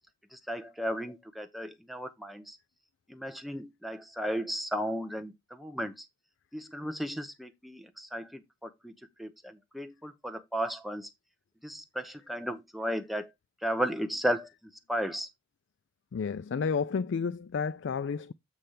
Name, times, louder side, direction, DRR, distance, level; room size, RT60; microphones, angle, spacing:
voice 1, 0.3-2.6 3.1-6.1 6.5-8.9 9.2-11.1 11.6-13.3 13.6-14.5 14.9-15.3, equal, ahead, 0.7 m, -34 dB
voice 2, 16.1-18.3, left 5 dB, 60° left, 0.3 m, -31 dB
7.9 x 3.3 x 5.7 m
head